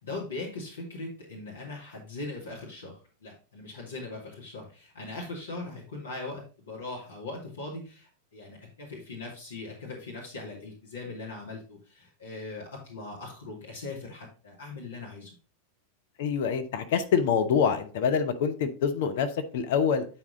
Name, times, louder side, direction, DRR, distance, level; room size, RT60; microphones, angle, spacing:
voice 1, 0.0-15.3, left 3 dB, 70° left, -3 dB, 2.4 m, -40 dB
voice 2, 16.2-20.1, left 6 dB, 50° left, 8 dB, 1.0 m, -26 dB
8.7 x 4.9 x 3.9 m, 0.37 s
figure-of-eight pair, 90°, 0 cm